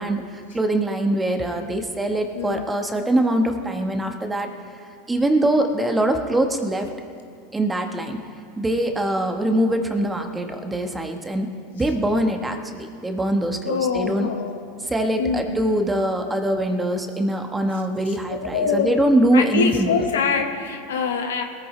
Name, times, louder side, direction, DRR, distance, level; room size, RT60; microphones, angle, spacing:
voice 1, 0.0-4.5 5.1-6.9 7.5-8.2 8.6-14.3 14.8-19.9, right 1 dB, 10° right, 5 dB, 1.4 m, -23 dB
voice 2, 13.7-14.6 15.2-15.4 18.5-18.9 19.3-21.4, left 6 dB, 85° left, 5 dB, 1.2 m, -24 dB
21.0 x 14.0 x 3.3 m, 2.3 s
hypercardioid pair, 100°, 0 cm